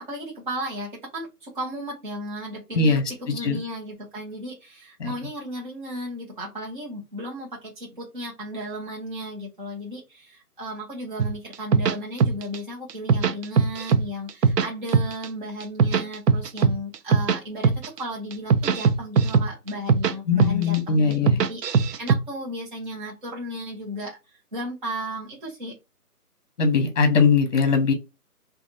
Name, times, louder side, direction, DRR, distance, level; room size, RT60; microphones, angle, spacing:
voice 1, 0.1-25.7, equal, 30° right, -5 dB, 0.9 m, -35 dB
voice 2, 2.8-3.6 5.0-5.1 20.3-21.4 26.6-27.9, left 5 dB, 50° left, 6 dB, 0.9 m, -21 dB
sound 1, 11.2-12.6 12.9-14.0 14.3-15.3 15.6-17.4 17.6-18.0 18.3-20.1 20.4-20.8 21.1-22.2, right 5 dB, 85° right, 0.6 m, -20 dB
3.2 x 2.4 x 2.5 m, 0.24 s
hypercardioid pair, 170°, 47 cm